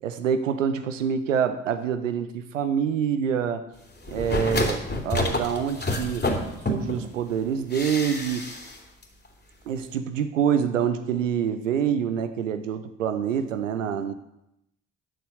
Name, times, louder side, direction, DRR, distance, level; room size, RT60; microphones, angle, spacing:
voice 1, 0.0-3.6 4.1-6.3 6.7-8.5 9.7-14.1, right 8 dB, 90° right, 10 dB, 0.8 m, -26 dB
sound 1, 4.0-7.1 7.7-8.8 9.0-9.1, left 1 dB, 25° left, 2.9 m, -28 dB
9.9 x 8.0 x 6.5 m, 0.84 s
hypercardioid pair, 45°, 37 cm